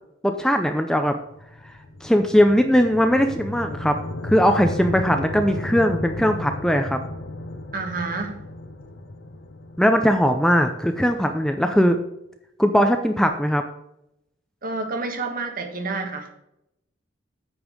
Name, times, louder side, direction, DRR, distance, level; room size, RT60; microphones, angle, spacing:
voice 1, 0.2-1.2 2.0-4.0 4.2-7.0 9.8-12.0 12.6-13.6, equal, 5° left, 6 dB, 0.5 m, -19 dB
sound 1, 1.3-11.6, left 1 dB, 70° left, 1.0 m, -34 dB
voice 2, 7.7-8.4 14.6-16.3, right 3 dB, 50° right, 4 dB, 1.5 m, -29 dB
8.9 x 5.4 x 6.1 m, 0.82 s
head